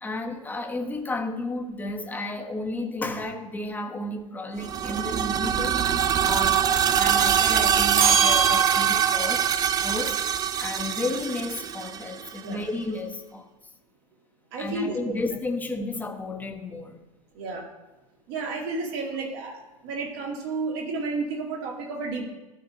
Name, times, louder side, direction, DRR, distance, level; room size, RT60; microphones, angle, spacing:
voice 1, 0.0-6.7 7.0-9.5 9.8-10.2 10.6-13.5 14.6-17.0, left 2 dB, 10° left, 1.1 m, -32 dB
sound 1, 4.6-12.4, right 9 dB, 20° right, 0.4 m, -24 dB
sound 2, 8.0-9.3, right 6 dB, 80° right, 0.6 m, -23 dB
voice 2, 14.5-15.1 17.3-17.6 18.3-22.2, right 3 dB, 55° right, 2.5 m, -31 dB
13.5 x 4.9 x 2.9 m
figure-of-eight pair, 90°, 18 cm